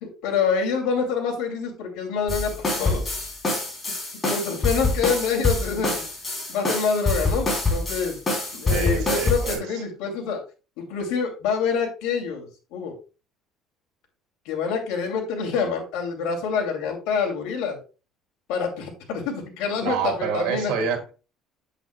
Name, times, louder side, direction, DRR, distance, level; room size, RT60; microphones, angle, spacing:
voice 1, 0.0-3.1 4.2-6.0 6.5-8.2 8.5-10.4 10.8-12.9 14.4-17.8 18.5-20.7, left 6 dB, 85° left, 2.6 m, -26 dB
sound 1, 2.3-9.6, left 2 dB, 20° left, 3.2 m, -25 dB
voice 2, 8.7-9.6 19.8-21.1, right 6 dB, 85° right, 2.5 m, -27 dB
8.3 x 8.2 x 2.3 m
cardioid pair, 150°, 0 cm